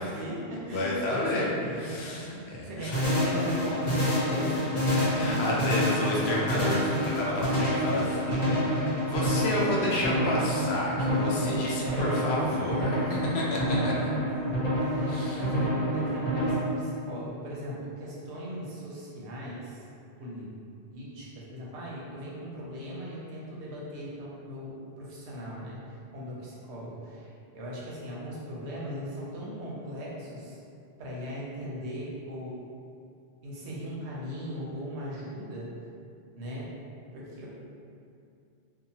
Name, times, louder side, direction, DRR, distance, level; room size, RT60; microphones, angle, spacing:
voice 1, 0.0-5.0 5.2-5.4 11.8-12.1 13.9-19.8 20.2-20.5 20.9-30.6 31.0-32.6 33.4-35.7 36.4-36.7 37.1-37.5, equal, 90° right, -5 dB, 1.0 m, -39 dB
voice 2, 0.7-3.0 4.2-14.1 15.1-15.4, left 1 dB, 75° left, -4 dB, 0.8 m, -31 dB
sound 1, 2.9-16.5, equal, 40° left, 0.7 m, -27 dB
2.8 x 2.2 x 2.7 m, 2.5 s
omnidirectional pair, 1.1 m